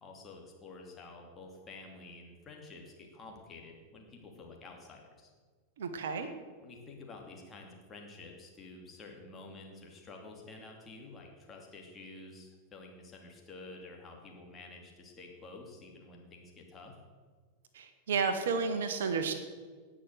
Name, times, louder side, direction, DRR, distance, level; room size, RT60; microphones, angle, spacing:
voice 1, 0.0-5.3 6.6-17.0, left 3 dB, 20° left, 1 dB, 2.7 m, -50 dB
voice 2, 5.8-6.3 17.7-19.3, right 5 dB, 60° right, 9 dB, 1.2 m, -31 dB
18.0 x 6.2 x 6.6 m, 1.5 s
figure-of-eight pair, 90°, 0 cm